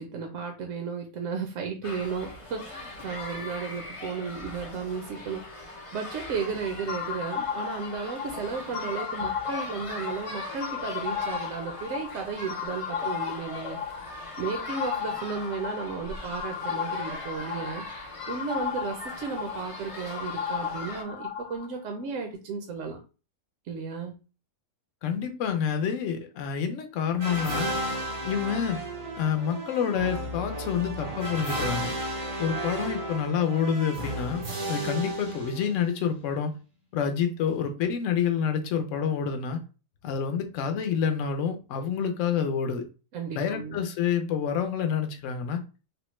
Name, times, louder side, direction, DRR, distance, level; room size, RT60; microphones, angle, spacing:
voice 1, 0.0-5.4 5.9-14.1 14.4-17.8 18.3-23.0 23.7-24.2 43.1-43.8, right 5 dB, 65° right, 0.8 m, -34 dB
sound 1, 1.8-21.0, left 2 dB, 45° left, 0.4 m, -41 dB
sound 2, 6.9-21.7, left 8 dB, 90° left, 1.1 m, -35 dB
voice 2, 25.0-27.7 28.2-28.8 29.2-31.9 32.4-34.4 34.7-36.6 36.9-39.6 40.0-42.8 43.3-45.6, left 7 dB, 65° left, 0.9 m, -28 dB
sound 3, 27.2-36.1, right 1 dB, 50° right, 0.3 m, -33 dB
3.5 x 2.1 x 3.0 m
omnidirectional pair, 1.6 m